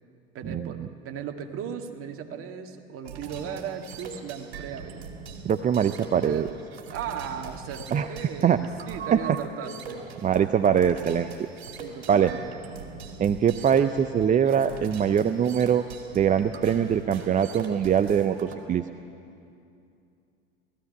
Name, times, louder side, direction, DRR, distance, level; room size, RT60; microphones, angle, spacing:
voice 1, 0.3-5.0 6.0-6.6 6.9-10.1 11.8-12.5, right 8 dB, 45° right, 4 dB, 2.1 m, -37 dB
sound 1, 3.0-18.5, right 5 dB, 75° right, 2.7 m, -41 dB
voice 2, 5.4-6.5 7.9-8.1 8.4-8.6 9.1-9.2 10.2-11.5 12.1-12.3 13.2-15.8 16.1-18.8, right 8 dB, 25° right, 10 dB, 0.6 m, -22 dB
19.5 x 15.0 x 9.7 m, 2.6 s
hypercardioid pair, 80°, 31 cm